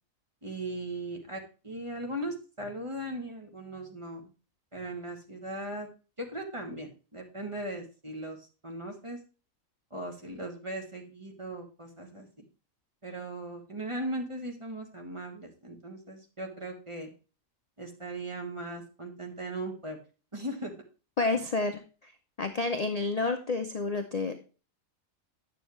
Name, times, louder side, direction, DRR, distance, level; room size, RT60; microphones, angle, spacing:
voice 1, 0.4-4.3 4.7-5.9 6.2-9.2 9.9-12.5 13.0-17.1 17.8-20.0 20.3-20.7, right 1 dB, 25° right, 3 dB, 1.3 m, -38 dB
voice 2, 21.2-21.8 22.4-24.3, left 3 dB, 40° left, 6 dB, 0.6 m, -29 dB
9.1 x 6.9 x 3.1 m, 0.34 s
omnidirectional pair, 1.4 m